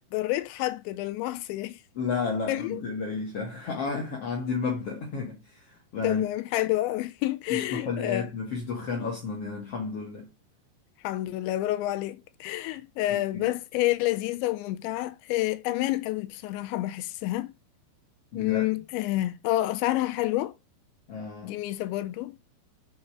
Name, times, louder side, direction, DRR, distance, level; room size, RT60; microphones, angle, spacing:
voice 1, 0.1-1.8 2.5-2.8 6.0-8.3 11.0-17.5 18.3-20.5 21.4-22.3, left 16 dB, 80° left, 2.8 m, -29 dB
voice 2, 1.9-6.2 7.5-10.3 13.1-13.5 18.3-18.6 21.1-21.6, left 4 dB, 55° left, 1.7 m, -32 dB
7.9 x 5.2 x 5.0 m
omnidirectional pair, 5.5 m